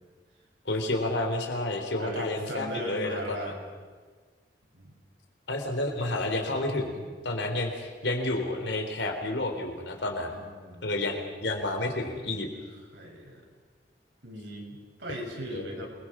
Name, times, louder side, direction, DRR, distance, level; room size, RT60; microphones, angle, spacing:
voice 1, 0.7-3.5 5.5-10.4 10.8-12.5 15.5-15.9, left 2 dB, 80° left, 4 dB, 3.6 m, -30 dB
voice 2, 2.0-3.6 4.7-4.9 6.0-6.1 10.2-10.9 12.9-13.4 14.2-15.9, equal, 85° right, -1 dB, 6.8 m, -38 dB
27.5 x 21.5 x 6.1 m, 1.5 s
head